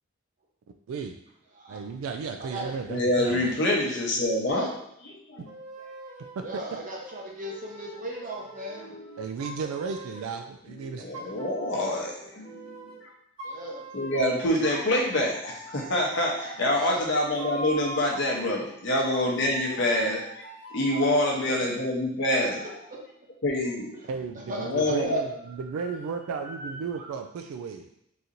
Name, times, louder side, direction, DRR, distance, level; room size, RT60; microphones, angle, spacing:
voice 1, 1.7-3.5 6.4-6.5 9.2-11.1 24.1-27.9, right 5 dB, 85° right, 6 dB, 0.3 m, -34 dB
voice 2, 2.4-2.7 4.4-4.7 6.4-9.0 11.0-11.4 13.4-13.8 16.7-17.1 21.3-21.7 22.6-22.7 24.3-25.2 25.5-26.1 26.4-27.1, right 1 dB, 40° right, -2 dB, 0.8 m, -39 dB
voice 3, 2.9-4.7 5.3-5.5 8.9-9.0 10.8-12.9 13.9-20.4 20.7-22.6 23.4-23.9 24.5-25.2, left 1 dB, 60° left, -1 dB, 0.8 m, -26 dB
sound 1, 5.5-6.5 7.0-10.5 11.1-13.0 13.4-14.5 15.1-18.4 19.1-21.3, right 1 dB, 65° right, 1.3 m, -42 dB
3.9 x 2.9 x 2.5 m, 0.75 s
head